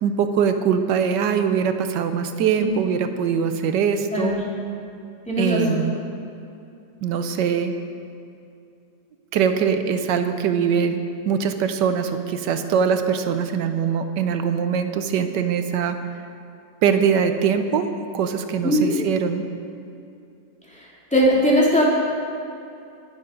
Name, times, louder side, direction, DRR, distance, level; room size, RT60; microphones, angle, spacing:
voice 1, 0.0-4.4 5.4-5.9 7.0-7.7 9.3-16.0 16.8-17.9 18.1-19.4, right 7 dB, 90° right, 8 dB, 1.4 m, -22 dB
voice 2, 5.3-5.8 18.6-18.9 21.1-21.8, equal, 5° left, -6 dB, 2.7 m, -19 dB
20.5 x 7.0 x 5.2 m, 2.6 s
omnidirectional pair, 1.8 m